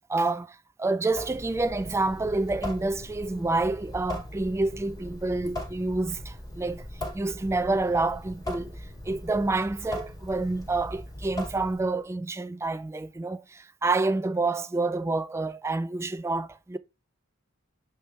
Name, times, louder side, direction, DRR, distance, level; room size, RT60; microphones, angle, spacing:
voice 1, 0.1-6.8 7.1-16.8, right 3 dB, 15° right, 0.3 m, -28 dB
Water tap faucet / Sink (filling or washing) / Drip, 1.1-12.0, left 1 dB, 20° left, 2.5 m, -39 dB
8.2 x 3.4 x 4.3 m
head